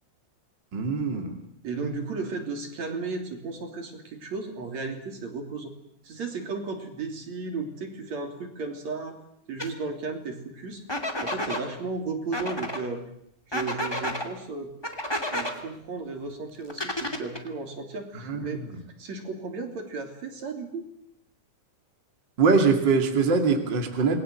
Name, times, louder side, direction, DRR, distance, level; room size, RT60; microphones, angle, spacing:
voice 1, 0.7-1.3 18.3-18.4 22.4-24.2, right 4 dB, 35° right, 4 dB, 2.9 m, -22 dB
voice 2, 1.6-5.7 6.0-9.2 9.5-10.8 11.2-13.0 13.5-14.7 15.3-18.6 19.0-20.9, right 4 dB, 55° right, 4 dB, 4.3 m, -34 dB
sound 1, 9.6-9.7 10.9-11.6 12.3-12.8 13.5-14.3 14.8-15.5 16.7-17.5, left 1 dB, 10° left, 2.1 m, -30 dB
28.0 x 21.5 x 7.7 m, 0.71 s
omnidirectional pair, 3.7 m